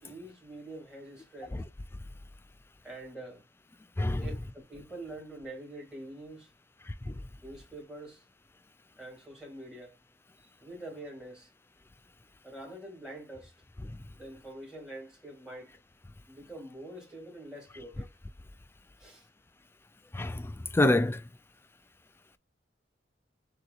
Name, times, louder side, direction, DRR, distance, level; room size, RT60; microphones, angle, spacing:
voice 1, 0.0-1.6 2.8-3.5 4.2-6.5 7.4-8.2 9.0-10.0 10.4-11.5 12.4-13.5 14.1-15.7 16.3-18.1 19.0-19.3, right 1 dB, 5° right, 2.2 m, -45 dB
voice 2, 20.1-21.2, left 1 dB, 10° left, 0.3 m, -26 dB
6.4 x 3.0 x 2.4 m
head